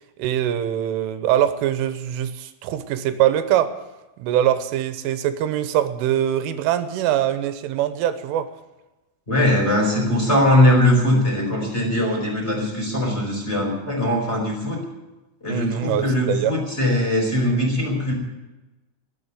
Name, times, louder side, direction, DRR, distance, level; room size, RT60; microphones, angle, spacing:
voice 1, 0.2-3.8 4.2-8.5 15.5-16.6, right 11 dB, 85° right, 10 dB, 3.4 m, -23 dB
voice 2, 9.3-14.8 15.4-18.1, left 1 dB, 15° left, -1 dB, 4.4 m, -20 dB
20.0 x 7.5 x 9.7 m, 1.1 s
omnidirectional pair, 5.7 m